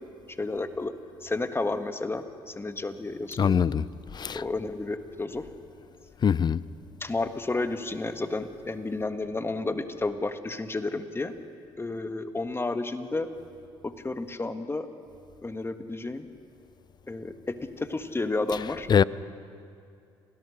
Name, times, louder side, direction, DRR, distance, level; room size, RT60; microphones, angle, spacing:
voice 1, 0.4-0.9 1.2-3.6 4.3-5.5 7.0-11.3 11.8-13.3 13.8-14.9 15.4-16.3 17.1-18.9, left 2 dB, 20° left, 1.5 m, -31 dB
voice 2, 3.4-3.8 4.1-4.4 6.2-6.6 18.9-19.0, left 7 dB, 40° left, 0.6 m, -22 dB
28.0 x 17.5 x 6.5 m
hypercardioid pair, 60°, 12 cm